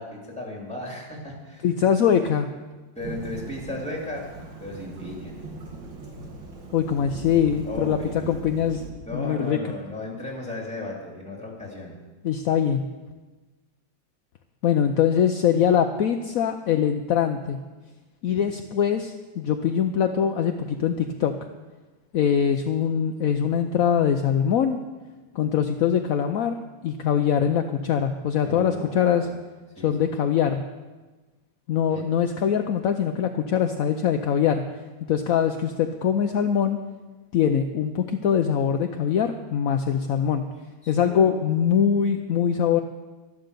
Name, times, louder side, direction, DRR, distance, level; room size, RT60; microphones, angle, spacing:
voice 1, 0.0-1.7 2.9-4.3 4.6-5.3 7.6-8.4 9.0-11.9 18.3-18.5 28.4-29.3 29.8-30.1 31.9-32.0 40.8-41.3, left 1 dB, 5° left, -1 dB, 3.0 m, -35 dB
voice 2, 1.6-2.5 6.7-8.0 8.3-8.8 9.1-9.6 12.2-12.8 14.6-17.6 18.2-21.3 22.1-24.8 25.3-26.6 26.8-29.3 29.8-30.6 31.7-34.6 35.1-36.8 37.3-40.4 40.9-42.8, left 8 dB, 65° left, 6 dB, 0.8 m, -22 dB
Thunderstorm / Rain, 3.0-8.9, right 2 dB, 70° right, 2.6 m, -39 dB
13.0 x 11.5 x 6.8 m, 1.2 s
omnidirectional pair, 2.1 m